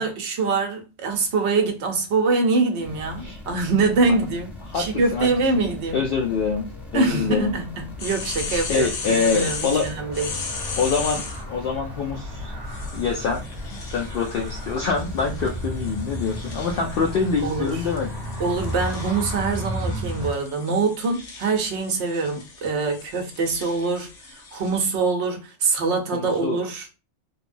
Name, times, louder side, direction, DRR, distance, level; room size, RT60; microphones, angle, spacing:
voice 1, 0.0-6.0 6.9-10.4 17.4-17.8 18.4-26.9, right 3 dB, 75° right, 1.0 m, -24 dB
sound 1, 2.8-19.4, left 2 dB, ahead, 0.4 m, -40 dB
voice 2, 4.7-5.3 5.5-5.6 5.9-6.7 6.9-7.5 8.5-9.9 10.8-11.2 11.5-12.5 12.9-13.4 13.9-18.1 26.1-26.6, left 5 dB, 60° left, 0.6 m, -25 dB
Car, 6.4-20.3, equal, 20° right, 1.2 m, -35 dB
sound 2, 8.0-11.4 12.7-24.9, left 4 dB, 90° left, 1.0 m, -37 dB
3.2 x 2.1 x 2.5 m
omnidirectional pair, 1.2 m